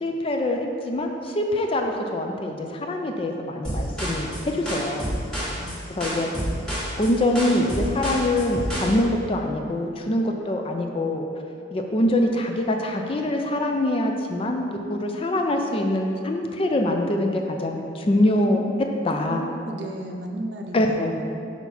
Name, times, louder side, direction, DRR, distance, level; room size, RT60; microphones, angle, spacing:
voice 1, 0.0-5.1 6.0-6.3 7.0-11.3 11.7-18.6 19.0-19.4 20.7-21.1, left 1 dB, 30° left, 3 dB, 0.4 m, -24 dB
sound 1, 3.6-8.9, equal, 5° left, 1.4 m, -29 dB
voice 2, 5.5-5.8 18.2-18.7 19.2-21.4, right 1 dB, 65° right, 2 dB, 0.6 m, -34 dB
5.7 x 4.6 x 4.2 m, 2.5 s
head